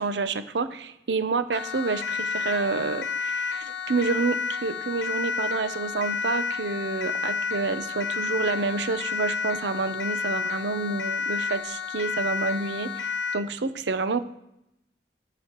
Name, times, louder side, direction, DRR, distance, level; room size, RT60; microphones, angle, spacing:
voice 1, 0.0-14.2, right 4 dB, 85° right, 11 dB, 0.7 m, -28 dB
Siren, 1.5-13.5, left 5 dB, 85° left, 0.6 m, -31 dB
14.0 x 4.9 x 3.0 m, 0.82 s
head